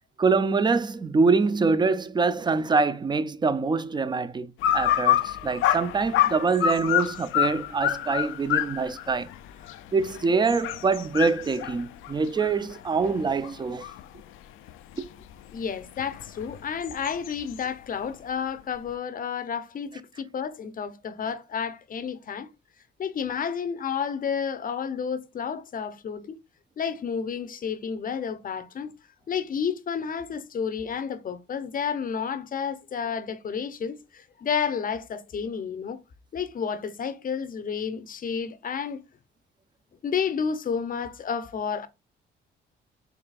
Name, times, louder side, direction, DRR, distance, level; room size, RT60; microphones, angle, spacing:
voice 1, 0.2-9.3 9.9-13.9, right 4 dB, 20° right, 0.4 m, -25 dB
sound 1, 4.6-14.2 14.7-17.6, left 12 dB, 85° left, 0.4 m, -27 dB
voice 2, 15.5-22.5 23.0-26.4 26.8-28.9 29.3-36.0 36.3-39.0 40.0-41.9, left 7 dB, 45° left, 0.7 m, -31 dB
4.8 x 3.3 x 2.4 m
cardioid pair, 90°, 20 cm